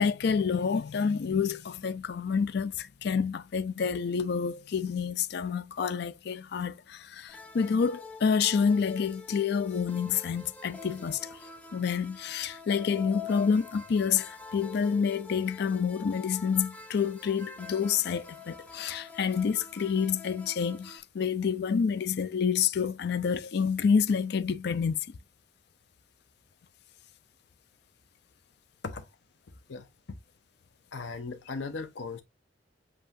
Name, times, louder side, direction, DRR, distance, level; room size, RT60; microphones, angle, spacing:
voice 1, 0.0-11.4 11.7-25.0, left 6 dB, 65° left, 0.4 m, -28 dB
sound 1, 7.3-21.0, left 4 dB, 10° left, 0.7 m, -46 dB
voice 2, 30.9-32.2, left 4 dB, 85° left, 0.7 m, -37 dB
7.6 x 2.7 x 2.6 m
head